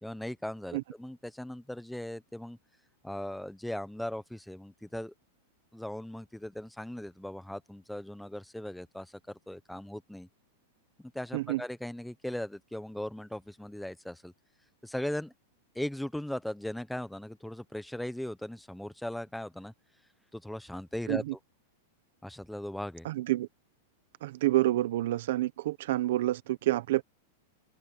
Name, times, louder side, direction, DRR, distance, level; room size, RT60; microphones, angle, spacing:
voice 1, 0.0-2.6 3.0-5.1 5.7-10.3 11.1-14.3 14.8-15.3 15.7-19.7 20.3-21.4 22.2-23.1, left 1 dB, ahead, 1.0 m, -38 dB
voice 2, 23.0-23.5 24.2-27.0, right 15 dB, 60° right, 1.1 m, -28 dB
open air
supercardioid pair, 160°, 0 cm